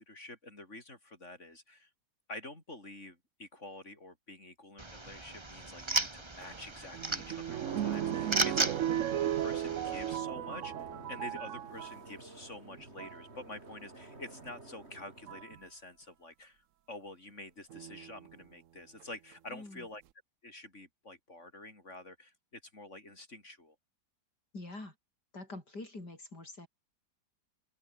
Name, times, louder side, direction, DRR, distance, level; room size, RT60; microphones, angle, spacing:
voice 1, 0.0-1.9 2.3-8.7 9.1-20.0 20.4-23.8, left 2 dB, 40° left, 6.1 m, -48 dB
sound 1, 4.8-10.2, right 2 dB, 15° right, 1.6 m, -36 dB
sound 2, 6.4-12.1 12.8-13.2 14.5-14.6 15.3-15.6 17.7-18.3 19.0-19.1 19.3-19.4, right 11 dB, 60° right, 0.8 m, -36 dB
sound 3, 7.6-15.4, right 2 dB, 35° right, 4.2 m, -49 dB
voice 2, 8.2-8.6 19.5-19.9 24.5-24.9 25.3-26.7, left 2 dB, 60° left, 7.2 m, -46 dB
omnidirectional pair, 2.0 m